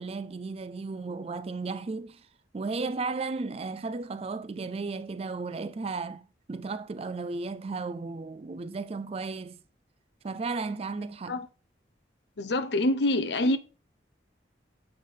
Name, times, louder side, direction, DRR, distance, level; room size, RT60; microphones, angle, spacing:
voice 1, 0.0-2.3 2.5-9.6 10.2-11.4, right 4 dB, 35° right, 0.4 m, -34 dB
voice 2, 12.4-13.6, left 1 dB, 65° left, 0.7 m, -25 dB
7.9 x 5.5 x 3.8 m
head